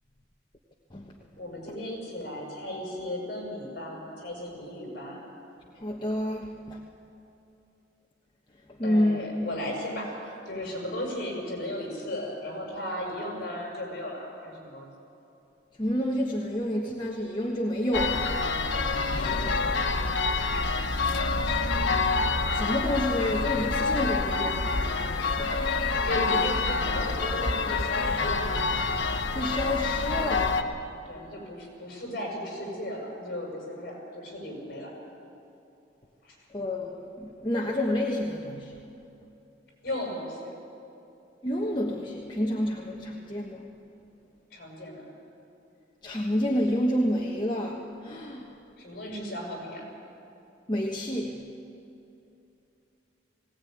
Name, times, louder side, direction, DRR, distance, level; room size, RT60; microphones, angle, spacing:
voice 1, 1.4-5.3 8.8-14.9 18.7-19.7 26.0-28.4 31.0-34.9 36.2-36.4 39.8-40.5 44.5-45.0 48.8-49.8, left 1 dB, 55° left, -1 dB, 6.8 m, -36 dB
voice 2, 5.8-6.8 8.7-9.2 15.8-18.5 22.5-26.0 29.3-30.7 36.5-38.9 41.4-43.6 46.0-48.5 50.7-51.5, left 1 dB, 25° left, -1 dB, 1.2 m, -29 dB
sound 1, 17.9-30.6, left 3 dB, 85° left, 1.2 m, -27 dB
20.0 x 17.5 x 9.4 m, 2.8 s
head